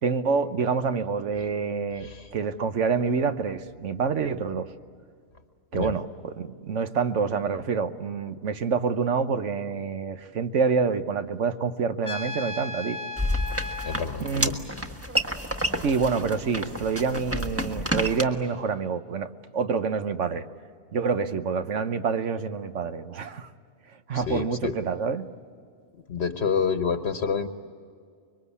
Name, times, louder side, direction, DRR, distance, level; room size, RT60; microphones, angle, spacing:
voice 1, 0.0-4.7 5.7-13.0 14.2-14.5 15.8-20.4 20.9-23.5 24.1-25.3, right 5 dB, 85° right, 9 dB, 1.4 m, -27 dB
Trumpet, 12.0-14.1, left 3 dB, 15° left, 1.0 m, -35 dB
sound 1, 13.2-18.2, equal, 10° right, 1.3 m, -29 dB
voice 2, 13.8-14.5 24.1-24.8 26.1-27.5, left 6 dB, 65° left, 7 dB, 1.2 m, -28 dB
25.5 x 23.0 x 8.4 m, 2.2 s
omnidirectional pair, 1.2 m